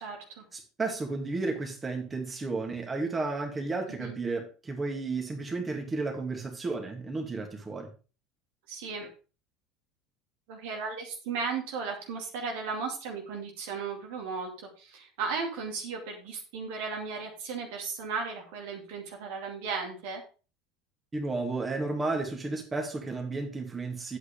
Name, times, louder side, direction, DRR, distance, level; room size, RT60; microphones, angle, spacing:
voice 1, 0.0-0.4 3.9-4.2 8.7-9.1 10.5-20.2, right 5 dB, 60° right, 2 dB, 2.3 m, -35 dB
voice 2, 0.5-7.9 21.1-24.2, right 3 dB, 20° right, 2 dB, 2.4 m, -33 dB
10.5 x 8.3 x 3.4 m, 0.35 s
figure-of-eight pair, 70°, 0 cm